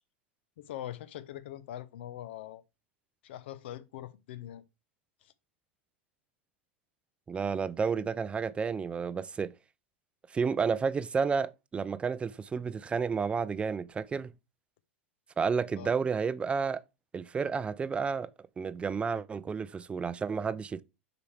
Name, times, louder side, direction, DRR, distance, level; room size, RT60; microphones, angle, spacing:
voice 1, 0.6-2.6 3.2-4.6 5.2-5.3 15.8-15.9, left 12 dB, 65° left, 0.7 m, -42 dB
voice 2, 7.3-9.5 10.3-14.3 15.4-16.8 17.1-18.3 18.6-20.8, right 5 dB, 15° right, 0.5 m, -31 dB
6.7 x 4.9 x 3.3 m
hypercardioid pair, 90°, 6 cm